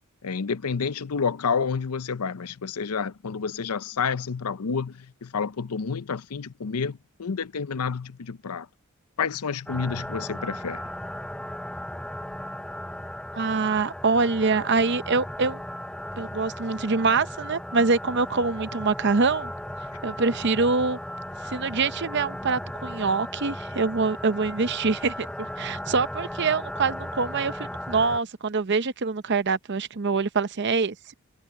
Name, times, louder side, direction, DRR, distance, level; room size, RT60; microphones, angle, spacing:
voice 1, 0.2-8.7 9.2-10.8, left 5 dB, 85° left, 0.6 m, -29 dB
sound 1, 9.7-28.2, equal, 5° left, 0.7 m, -36 dB
voice 2, 13.3-15.6 16.2-19.5 20.0-21.0 21.4-31.0, right 4 dB, 50° right, 0.7 m, -25 dB
head